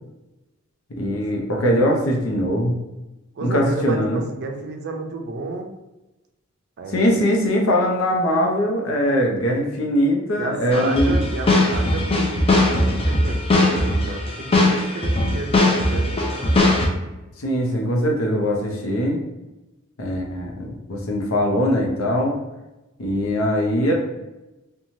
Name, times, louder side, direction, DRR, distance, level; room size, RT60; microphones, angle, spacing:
voice 1, 0.9-2.8 3.4-4.2 6.9-11.2 17.4-19.2 20.0-22.4 23.0-23.9, equal, 80° left, 0 dB, 0.6 m, -21 dB
voice 2, 3.4-5.7 6.8-7.2 10.3-16.6, right 3 dB, 55° right, 3 dB, 0.4 m, -32 dB
sound 1, 10.7-16.9, left 2 dB, 25° left, 0.4 m, -19 dB
3.0 x 2.2 x 2.6 m, 1.0 s
head